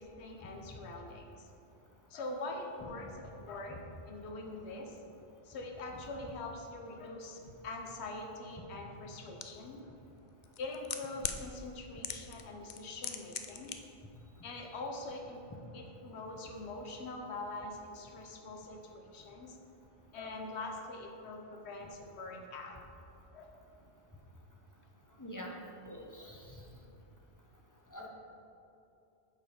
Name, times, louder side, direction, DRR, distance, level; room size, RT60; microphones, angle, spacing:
voice 1, 0.0-1.5 2.1-3.8 4.1-5.0 5.4-9.9 10.6-13.8 14.4-15.5 15.7-19.6 20.1-22.8 23.3-23.5, left 2 dB, 90° left, 2 dB, 1.1 m, -43 dB
sound 1, 9.4-9.5 10.4-11.4 12.0-12.4 12.7-13.8 14.0-14.1, left 8 dB, 55° left, 0.5 m, -37 dB
voice 2, 25.2-25.5 25.8-26.5 27.9-28.1, left 1 dB, 20° left, -1 dB, 0.8 m, -45 dB
8.1 x 4.7 x 5.2 m, 2.8 s
omnidirectional pair, 1.1 m